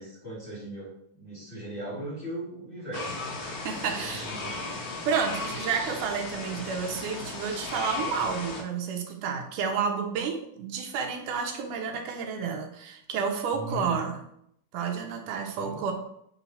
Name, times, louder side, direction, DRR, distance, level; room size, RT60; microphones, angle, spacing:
voice 1, 0.0-3.2 4.0-4.9 13.5-14.0 15.6-15.9, equal, 20° left, -7 dB, 2.6 m, -38 dB
sound 1, 2.9-8.6, left 3 dB, 80° left, 0.8 m, -36 dB
voice 2, 3.6-4.3 4.8-14.2 14.7-15.9, right 6 dB, 90° right, 2 dB, 2.4 m, -30 dB
7.1 x 3.9 x 4.1 m, 0.72 s
omnidirectional pair, 3.5 m